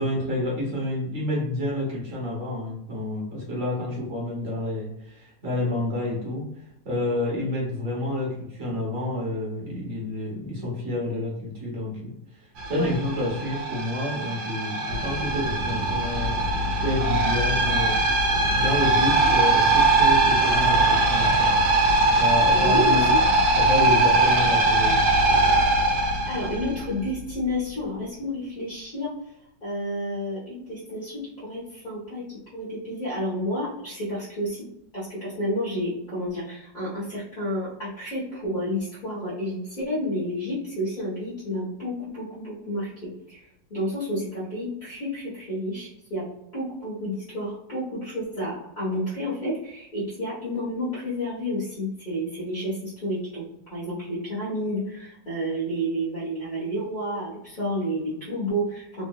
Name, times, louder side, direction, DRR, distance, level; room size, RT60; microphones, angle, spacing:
voice 1, 0.0-6.5 6.8-12.1 12.6-16.4 16.8-18.0 18.5-21.5 22.2-23.1 23.5-25.2, left 1 dB, 50° right, -4 dB, 1.5 m, -29 dB
sound 1, 12.6-27.1, right 2 dB, 65° right, 1.1 m, -21 dB
voice 2, 22.5-23.2 26.3-29.1 29.6-32.2 32.5-34.6 34.9-42.9 43.3-46.2 46.5-59.0, equal, 30° left, -10 dB, 1.2 m, -30 dB
3.6 x 2.5 x 2.3 m, 0.83 s
omnidirectional pair, 1.9 m